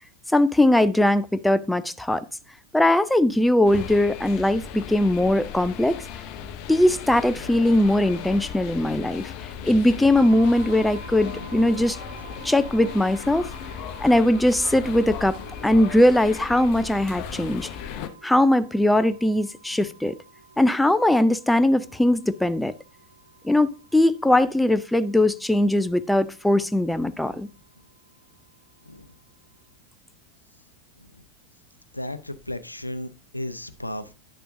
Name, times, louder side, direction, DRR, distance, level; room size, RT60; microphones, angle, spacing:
voice 1, 0.3-2.2 2.7-6.0 6.7-9.3 9.6-12.0 12.4-13.5 14.0-15.4 15.6-17.7 18.2-20.2 20.6-22.7 23.4-27.5, left 1 dB, 5° left, 0.4 m, -20 dB
sound 1, 3.6-18.1, left 7 dB, 40° left, 0.8 m, -37 dB
sound 2, 10.1-29.7, right 5 dB, 60° right, 1.3 m, -49 dB
voice 2, 11.2-11.7 15.2-15.5 17.2-17.6 27.1-27.4 28.8-29.1 31.0-31.2 31.9-34.1, left 1 dB, 85° left, 0.5 m, -36 dB
10.0 x 6.7 x 2.6 m
figure-of-eight pair, 90°, 0 cm